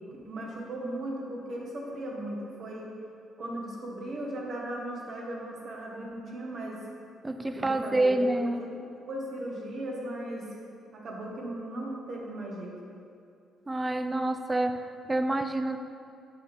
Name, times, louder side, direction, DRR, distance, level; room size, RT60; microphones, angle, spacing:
voice 1, 0.1-2.9 3.4-6.8 7.5-8.3 8.6-8.7 9.1-10.6 10.9-12.8, right 1 dB, 60° right, -2 dB, 1.4 m, -37 dB
voice 2, 7.2-8.6 13.7-15.8, right 2 dB, 15° right, 8 dB, 0.4 m, -27 dB
6.5 x 5.3 x 4.3 m, 2.5 s
cardioid pair, 90°, 0 cm